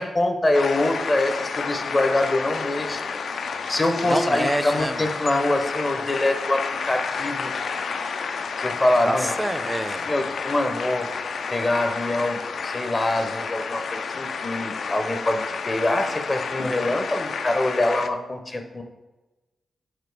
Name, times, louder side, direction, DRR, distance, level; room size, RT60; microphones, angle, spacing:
voice 1, 0.0-3.0 3.7-7.5 8.6-9.4 10.0-11.1 11.5-18.8, left 1 dB, 30° left, 5 dB, 0.6 m, -24 dB
sound 1, 0.5-18.1, left 5 dB, 70° left, 0.3 m, -30 dB
voice 2, 4.0-5.1 9.1-10.0, right 1 dB, 10° right, 12 dB, 0.3 m, -27 dB
5.0 x 4.8 x 4.6 m, 1.1 s
wide cardioid pair, 110°, 0 cm